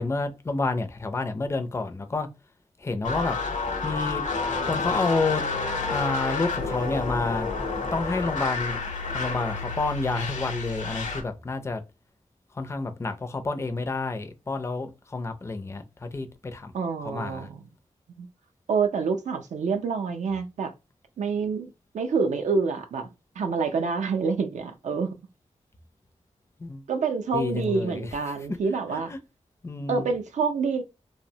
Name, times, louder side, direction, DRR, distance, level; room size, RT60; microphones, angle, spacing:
voice 1, 0.0-2.3 2.8-3.4 3.8-4.2 4.7-5.4 5.9-7.5 7.7-8.8 9.1-11.8 12.5-16.7 17.0-17.5 26.6-26.9 27.3-28.2 28.9-29.2 29.6-30.1, left 3 dB, 20° left, 0.4 m, -29 dB
sound 1, 3.0-11.2, left 4 dB, 85° left, 0.6 m, -30 dB
voice 2, 16.7-17.6 18.2-18.3 18.7-20.7 21.2-23.1 23.4-25.1 26.9-29.1 29.9-30.8, right 5 dB, 75° right, 0.4 m, -27 dB
2.7 x 2.1 x 2.6 m
wide cardioid pair, 95°, 12 cm